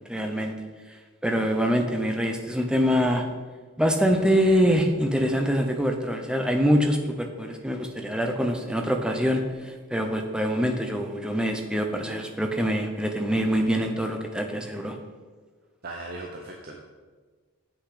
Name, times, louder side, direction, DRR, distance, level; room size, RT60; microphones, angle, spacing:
voice 1, 0.1-0.5 1.2-3.3 3.8-15.0, equal, 5° right, 3 dB, 0.7 m, -24 dB
voice 2, 15.8-16.8, right 2 dB, 45° right, 0 dB, 0.8 m, -38 dB
7.9 x 5.9 x 5.0 m, 1.4 s
head